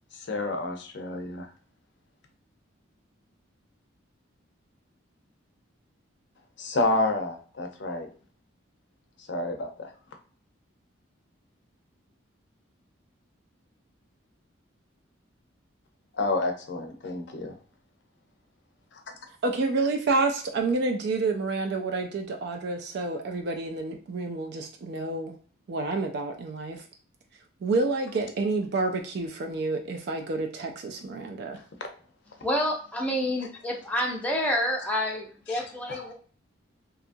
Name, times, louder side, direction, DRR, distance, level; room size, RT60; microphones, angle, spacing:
voice 1, 0.1-1.5 6.6-8.1 9.3-9.9 16.1-17.5 18.9-19.0 35.5-35.6 35.9-36.1, left 2 dB, 60° left, 4 dB, 0.5 m, -29 dB
voice 2, 19.4-25.3 25.7-26.8 27.6-31.6, right 3 dB, 50° right, 4 dB, 0.3 m, -29 dB
voice 3, 32.4-36.1, equal, 5° left, -1 dB, 0.5 m, -28 dB
2.7 x 2.3 x 2.5 m, 0.43 s
head